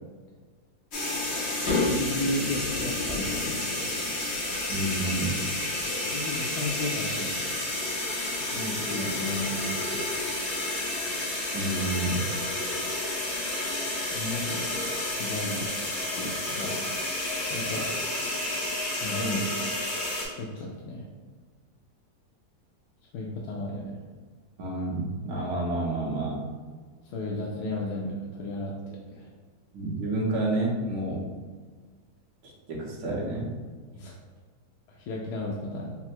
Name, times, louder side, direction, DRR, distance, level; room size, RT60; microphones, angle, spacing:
sound 1, 0.9-20.3, left 2 dB, 50° left, 1.0 m, -30 dB
voice 1, 1.9-3.9 6.0-7.7 8.3-10.0 14.1-15.7 16.2-16.9 17.5-17.9 19.0-19.5 20.3-21.1 23.1-24.0 27.0-29.3 33.9-34.1 34.9-35.9, left 1 dB, 75° left, -2 dB, 1.1 m, -34 dB
voice 2, 4.7-5.4 11.5-12.3 24.6-26.5 29.7-31.3 32.4-33.5, right 2 dB, 65° right, -3 dB, 1.3 m, -29 dB
4.1 x 2.0 x 4.3 m, 1.5 s
omnidirectional pair, 1.8 m